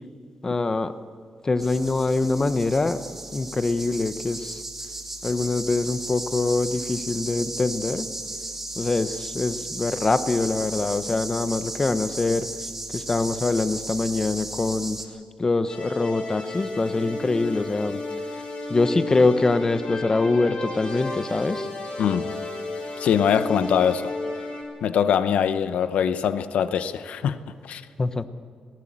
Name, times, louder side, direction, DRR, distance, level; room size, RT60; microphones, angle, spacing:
voice 1, 0.4-0.9 1.4-3.0 3.3-4.6 5.2-8.1 8.8-12.5 12.9-15.0 15.4-18.0 18.7-21.7 28.0-28.3, left 3 dB, 25° left, 0.9 m, -24 dB
sound 1, 1.6-15.0, right 2 dB, 15° right, 2.2 m, -35 dB
sound 2, 15.7-24.6, left 2 dB, 50° left, 6.1 m, -32 dB
voice 2, 22.0-22.4 23.0-24.0 24.8-27.4 27.6-27.8, left 8 dB, 90° left, 0.8 m, -22 dB
19.5 x 18.5 x 7.5 m
cardioid pair, 120°, 2 cm